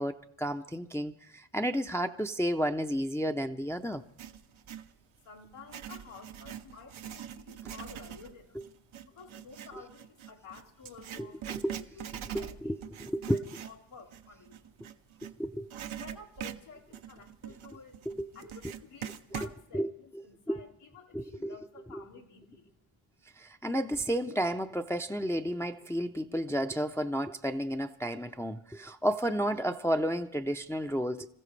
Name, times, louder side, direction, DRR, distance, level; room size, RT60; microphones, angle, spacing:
voice 1, 0.0-4.0 11.2-11.8 12.3-13.4 15.4-15.7 18.1-18.3 19.7-19.9 20.5-20.6 21.1-21.6 21.9-22.0 23.4-31.3, equal, 5° left, 0.5 m, -32 dB
Writing, 3.9-4.9 5.5-15.3 15.7-19.6, right 10 dB, 70° right, 0.9 m, -43 dB
voice 2, 5.2-8.6 9.0-11.6 11.9-12.7 13.0-14.7 16.0-18.0 18.3-22.7, left 5 dB, 85° left, 2.3 m, -51 dB
26.0 x 15.0 x 3.3 m
cardioid pair, 75°, 50 cm